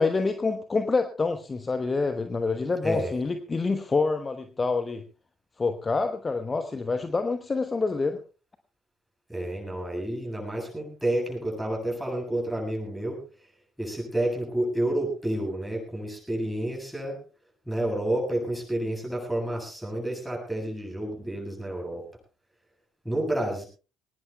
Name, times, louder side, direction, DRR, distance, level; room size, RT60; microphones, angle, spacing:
voice 1, 0.0-5.0 5.6-8.2, left 4 dB, 25° left, 8 dB, 1.1 m, -27 dB
voice 2, 2.8-3.2 9.3-13.2 13.8-17.2 17.7-22.0 23.0-23.6, right 1 dB, 5° right, 0 dB, 7.8 m, -30 dB
22.5 x 19.0 x 2.3 m, 0.35 s
figure-of-eight pair, 50°, 0 cm